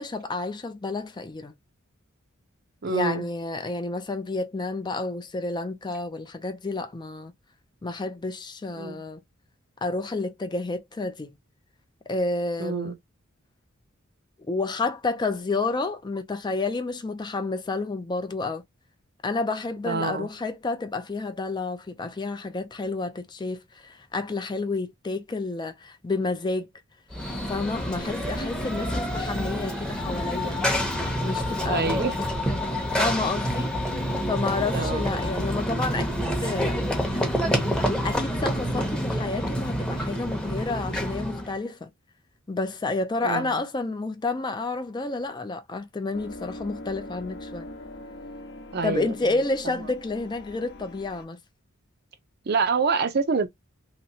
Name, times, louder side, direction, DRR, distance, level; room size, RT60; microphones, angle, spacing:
voice 1, 0.0-1.6 2.9-7.3 7.8-9.2 9.8-11.4 12.1-12.9 14.5-18.6 19.2-26.7 27.3-30.6 31.2-32.0 33.0-33.8 34.3-36.8 37.1-37.3 38.0-41.9 42.5-47.7 48.8-51.4, left 3 dB, 20° left, 0.4 m, -30 dB
voice 2, 2.8-3.3 8.7-9.0 12.6-13.0 19.9-20.3 31.7-32.2 34.7-35.1 43.2-43.6 48.7-49.4 52.5-53.5, right 4 dB, 50° right, 0.6 m, -26 dB
Run / Train, 27.1-41.5, equal, 5° left, 0.8 m, -27 dB
sound 1, 46.1-51.2, left 1 dB, 55° left, 0.8 m, -42 dB
3.0 x 2.9 x 2.7 m
head